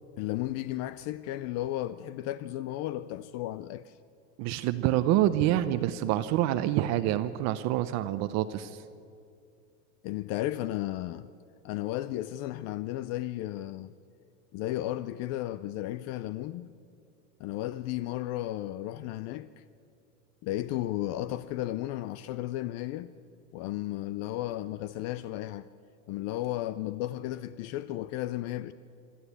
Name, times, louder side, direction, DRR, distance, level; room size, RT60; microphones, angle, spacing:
voice 1, 0.2-4.0 10.0-11.3 11.6-13.9 14.5-16.7 17.4-19.6 20.4-23.1 23.5-25.7 26.1-28.7, left 15 dB, 45° left, 0.5 m, -34 dB
voice 2, 4.4-8.8, right 13 dB, 50° right, 0.7 m, -27 dB
26.0 x 12.5 x 8.2 m
supercardioid pair, 150°, 37 cm